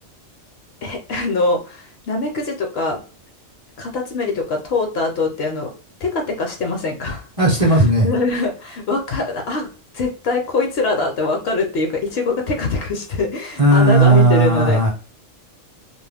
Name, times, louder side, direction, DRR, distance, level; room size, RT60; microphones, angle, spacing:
voice 1, 0.8-3.0 3.8-5.7 6.0-7.2 7.6-9.7 9.9-14.8, left 3 dB, 65° left, 3 dB, 0.7 m, -23 dB
voice 2, 7.4-8.1 13.6-14.9, right 2 dB, 35° right, -3 dB, 0.6 m, -14 dB
2.3 x 2.0 x 3.3 m, 0.37 s
omnidirectional pair, 1.3 m